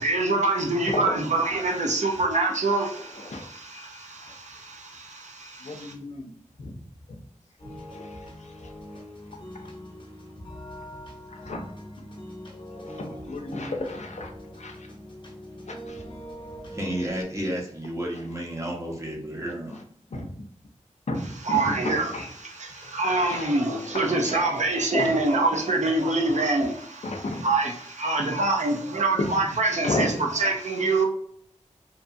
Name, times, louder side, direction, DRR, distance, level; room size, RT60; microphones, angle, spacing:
voice 1, 0.0-5.9 21.5-22.1 22.4-31.0, right 2 dB, 70° right, 1 dB, 0.6 m, -25 dB
voice 2, 0.9-1.2 2.9-3.7 4.3-4.7 5.6-6.3 6.6-6.8 7.1-7.2 7.7-9.0 9.5-9.7 11.3-11.7 12.8-14.9 15.7-16.1 19.7-19.8 20.1-20.4 21.1-24.5 24.9-25.2 27.0-27.5 29.2-29.4 29.7-30.2, left 2 dB, 65° left, 3 dB, 0.5 m, -34 dB
sound 1, 7.6-17.2, equal, 40° left, 0.8 m, -42 dB
voice 3, 16.7-19.8, equal, 25° right, -2 dB, 0.9 m, -31 dB
2.7 x 2.3 x 2.6 m, 0.63 s
wide cardioid pair, 50°, 13 cm